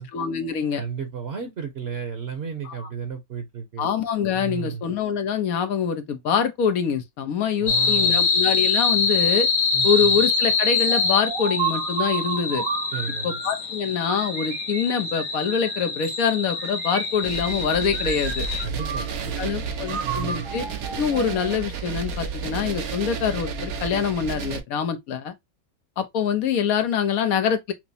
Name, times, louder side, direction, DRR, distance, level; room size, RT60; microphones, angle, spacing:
voice 1, 0.0-0.8 2.6-2.9 3.8-9.5 9.8-12.6 13.2-18.5 19.4-20.6 21.0-25.3 26.0-27.7, left 7 dB, 85° left, 1.3 m, -25 dB
voice 2, 0.7-3.9 4.3-4.8 7.6-8.3 9.7-10.2 12.9-13.4 18.6-19.7 20.0-20.5, right 7 dB, 55° right, 0.9 m, -33 dB
sound 1, 7.7-18.7, left 4 dB, 65° left, 1.2 m, -25 dB
sound 2, 10.9-13.6 14.1-15.9 16.5-17.7 17.9-19.4 19.9-21.7, right 7 dB, 70° right, 1.3 m, -33 dB
sound 3, 17.2-24.6, right 6 dB, 90° right, 1.3 m, -32 dB
5.8 x 2.0 x 2.6 m
omnidirectional pair, 1.5 m